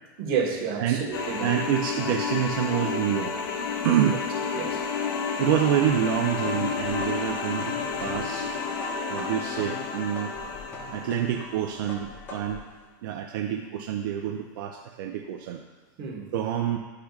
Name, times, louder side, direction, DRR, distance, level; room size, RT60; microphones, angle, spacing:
voice 1, 0.2-1.6 4.5-4.9 16.0-16.3, right 6 dB, 45° right, -1 dB, 1.4 m, -30 dB
sound 1, 1.1-11.9, left 5 dB, 90° left, 0.8 m, -31 dB
voice 2, 1.4-3.5 3.8-4.2 5.4-7.7 8.0-8.5 9.1-10.3 10.9-12.6 13.0-15.6 16.3-16.8, right 10 dB, 75° right, 3 dB, 0.5 m, -27 dB
sound 2, 6.2-12.7, left 2 dB, 20° left, 1.1 m, -43 dB
11.5 x 4.9 x 2.4 m, 1.2 s
supercardioid pair, 155°, 11 cm